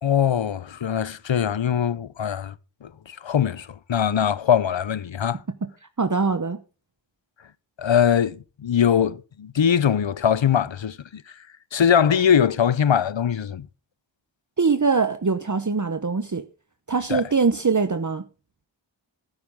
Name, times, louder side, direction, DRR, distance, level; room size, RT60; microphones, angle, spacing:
voice 1, 0.0-2.5 2.8-5.4 7.8-11.2 11.7-13.7 17.1-17.2, left 8 dB, 80° left, 0.7 m, -22 dB
voice 2, 6.0-6.6 14.6-16.4 16.9-18.2, right 4 dB, 40° right, 0.9 m, -22 dB
13.0 x 9.8 x 3.6 m
wide cardioid pair, 50°, 45 cm